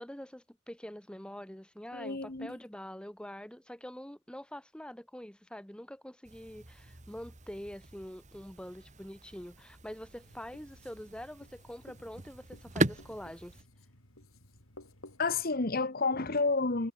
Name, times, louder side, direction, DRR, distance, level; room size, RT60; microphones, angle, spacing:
voice 1, 0.0-13.6, equal, 5° left, 0.9 m, -45 dB
voice 2, 1.9-2.6 15.2-16.9, left 3 dB, 45° left, 1.3 m, -30 dB
sound 1, 6.2-13.6, right 2 dB, 35° right, 2.2 m, -39 dB
Writing, 9.9-15.5, left 1 dB, 75° left, 7.4 m, -56 dB
head